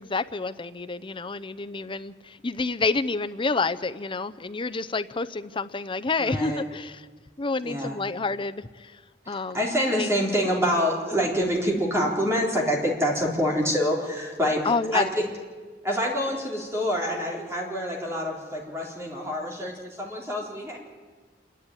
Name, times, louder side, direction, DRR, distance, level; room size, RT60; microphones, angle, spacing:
voice 1, 0.0-7.0 7.4-8.6 9.3-9.6 10.0-10.1 14.6-15.1, left 3 dB, 30° left, 11 dB, 0.6 m, -28 dB
voice 2, 6.2-6.6 7.6-8.0 9.3-15.3 15.8-20.8, equal, 15° right, -2 dB, 4.0 m, -26 dB
27.0 x 11.0 x 9.9 m, 1.5 s
head